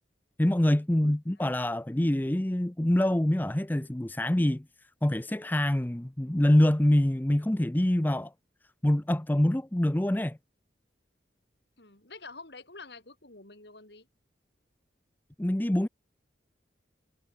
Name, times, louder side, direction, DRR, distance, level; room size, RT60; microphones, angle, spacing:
voice 1, 0.4-4.6 5.0-8.3 8.8-10.4 15.4-15.9, left 1 dB, 10° left, 0.5 m, -25 dB
voice 2, 1.0-1.5 11.8-14.1, left 3 dB, 65° left, 3.9 m, -48 dB
head